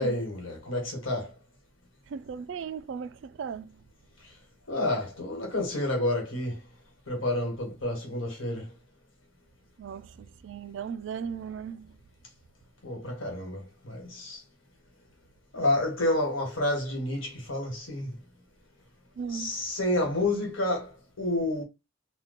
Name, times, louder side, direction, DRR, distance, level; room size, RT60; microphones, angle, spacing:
voice 1, 0.0-1.3 4.7-6.6 7.1-8.7 12.8-14.4 15.5-18.1 19.3-21.6, left 1 dB, 80° left, 1.5 m, -29 dB
voice 2, 2.1-3.8 9.8-12.0 19.2-19.6, right 6 dB, 70° right, 0.3 m, -37 dB
2.9 x 2.2 x 4.1 m
head